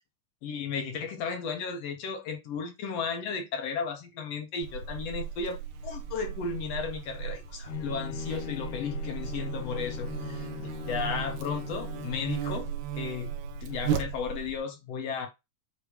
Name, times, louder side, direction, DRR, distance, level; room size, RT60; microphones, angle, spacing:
voice 1, 0.4-5.6 5.8-12.7 13.0-15.3, left 5 dB, 60° left, 1.9 m, -34 dB
Buzz, 4.6-14.6, right 8 dB, 75° right, 2.1 m, -36 dB
Bowed string instrument, 7.7-12.4, left 11 dB, 75° left, 2.2 m, -41 dB
8.4 x 3.0 x 4.9 m
omnidirectional pair, 3.8 m